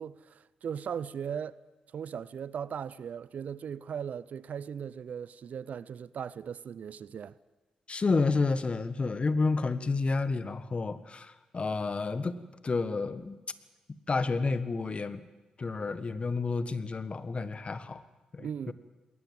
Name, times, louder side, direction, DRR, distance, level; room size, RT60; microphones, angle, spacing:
voice 1, 0.0-1.6 1.9-7.3 18.4-18.7, right 7 dB, 65° right, 0.6 m, -38 dB
voice 2, 7.9-13.4 14.1-15.2 15.6-18.0 18.3-18.7, left 4 dB, 45° left, 1.4 m, -30 dB
20.5 x 18.5 x 7.6 m
hypercardioid pair, 40°, 3 cm